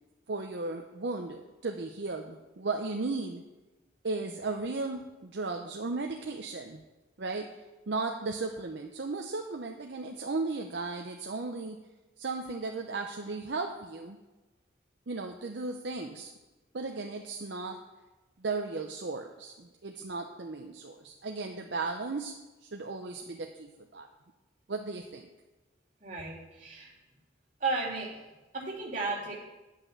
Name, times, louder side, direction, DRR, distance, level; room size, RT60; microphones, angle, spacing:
voice 1, 0.3-3.4 4.0-6.8 7.2-7.5 7.9-11.8 12.2-14.2 15.1-16.3 16.7-17.8 18.4-22.3 22.6-24.1 24.7-25.3, right 3 dB, 60° right, 3 dB, 0.7 m, -35 dB
voice 2, 26.0-26.9 27.6-28.2 28.5-29.4, right 3 dB, 40° right, -4 dB, 2.6 m, -34 dB
9.9 x 5.7 x 7.2 m, 1.1 s
head